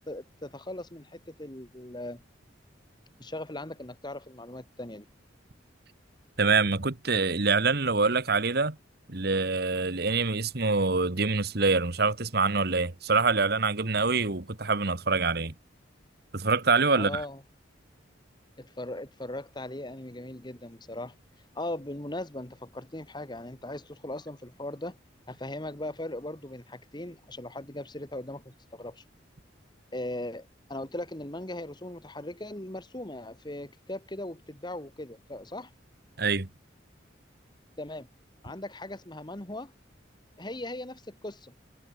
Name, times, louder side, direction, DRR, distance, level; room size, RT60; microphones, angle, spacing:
voice 1, 0.1-2.2 3.2-5.1 17.0-17.4 18.6-21.2 21.6-25.0 25.3-29.0 29.9-35.7 37.8-38.1 38.4-39.7 40.4-41.5, left 1 dB, 25° left, 1.7 m, -39 dB
voice 2, 6.4-8.8 9.1-15.5 16.3-17.2 36.2-36.5, right 4 dB, 55° right, 1.5 m, -25 dB
head